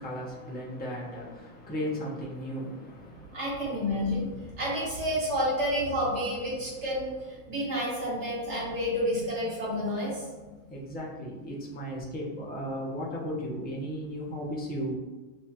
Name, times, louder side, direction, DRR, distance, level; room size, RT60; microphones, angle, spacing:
voice 1, 0.0-4.6 6.5-6.8 7.4-7.5 10.7-15.0, equal, 10° left, -5 dB, 0.6 m, -36 dB
voice 2, 3.3-4.3 4.6-7.1 7.5-10.2, equal, 50° right, -7 dB, 1.9 m, -29 dB
7.0 x 2.4 x 2.8 m, 1.2 s
omnidirectional pair, 1.6 m